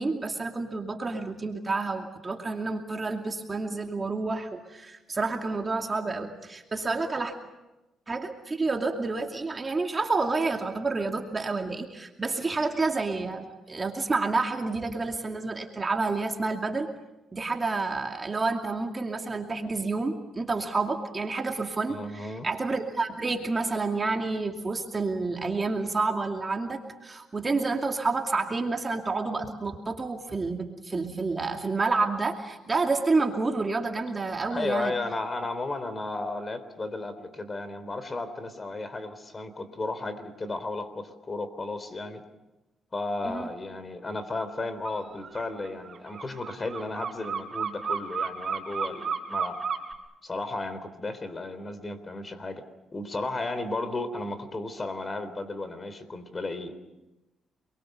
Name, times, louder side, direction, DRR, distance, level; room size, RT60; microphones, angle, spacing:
voice 1, 0.0-7.3 8.1-16.9 17.3-34.9 43.2-43.5, right 3 dB, 30° right, 3 dB, 2.5 m, -29 dB
voice 2, 21.9-22.5 34.5-42.2 42.9-49.6 50.2-52.6 52.9-56.8, left 2 dB, 30° left, 12 dB, 3.6 m, -34 dB
sound 1, 44.8-45.0 45.2-49.9, right 6 dB, 50° right, 4.4 m, -32 dB
28.5 x 23.0 x 6.8 m, 1.0 s
cardioid pair, 90°, 0 cm